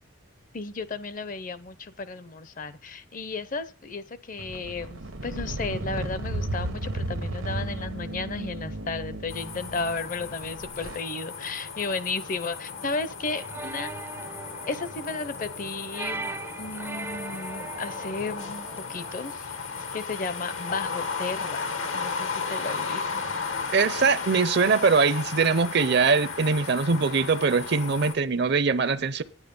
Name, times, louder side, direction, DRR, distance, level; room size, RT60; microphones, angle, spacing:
voice 1, 0.5-13.9 14.7-21.6 21.9-23.3, left 3 dB, 40° left, 0.6 m, -34 dB
sound 1, 4.4-11.0, right 1 dB, 90° right, 1.2 m, -34 dB
sound 2, 9.3-28.1, left 5 dB, 85° left, 1.6 m, -35 dB
sound 3, 13.3-19.3, right 3 dB, 10° right, 0.4 m, -39 dB
voice 2, 23.7-29.2, right 4 dB, 55° right, 0.6 m, -22 dB
9.8 x 9.2 x 5.3 m
head